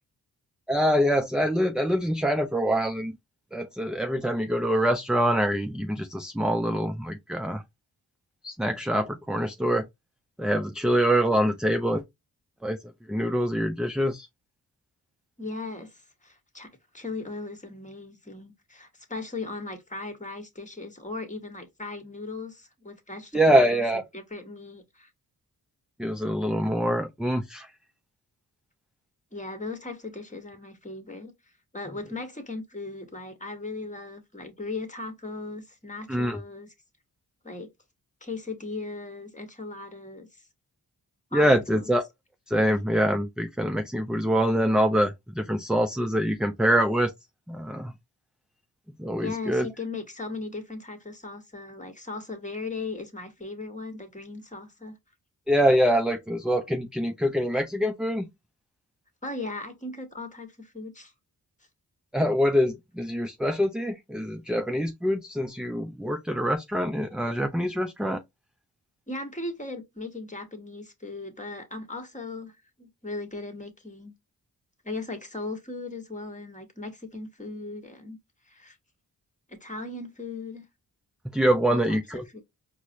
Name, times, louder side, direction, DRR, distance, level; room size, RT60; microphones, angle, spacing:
voice 1, 0.7-3.2 3.5-7.6 8.4-9.9 10.4-12.0 12.6-12.8 13.1-14.3 23.3-24.0 26.0-27.7 36.1-36.4 41.3-42.0 42.5-47.1 47.5-47.9 49.0-49.7 55.5-58.3 62.1-68.2 81.2-82.2, equal, ahead, 0.4 m, -25 dB
voice 2, 15.4-16.7 16.9-23.8 24.1-25.1 26.2-26.3 29.3-31.3 31.7-36.7 37.4-37.7 38.2-40.4 41.3-41.9 49.2-55.0 59.2-61.1 69.1-74.1 74.8-78.2 78.5-78.8 79.5-80.7 81.7-82.4, left 3 dB, 20° left, 1.3 m, -38 dB
4.6 x 2.1 x 2.8 m
cardioid pair, 50°, 39 cm